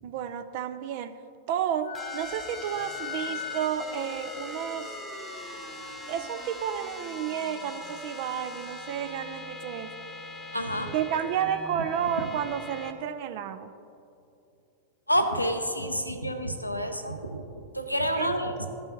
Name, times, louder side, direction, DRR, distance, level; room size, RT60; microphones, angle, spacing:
voice 1, 0.0-1.2 1.5-5.0 6.1-10.0 10.9-13.7 18.1-18.4, right 9 dB, 50° right, 7 dB, 0.4 m, -31 dB
Wind instrument woodwind instrument, 1.8-5.3, left 9 dB, 65° left, 0.4 m, -40 dB
sound 1, 1.9-12.9, left 1 dB, 10° left, 0.9 m, -41 dB
voice 2, 10.5-10.9 15.1-18.7, equal, 90° left, 6 dB, 0.7 m, -29 dB
15.5 x 5.5 x 2.8 m, 2.6 s
figure-of-eight pair, 90°, 0 cm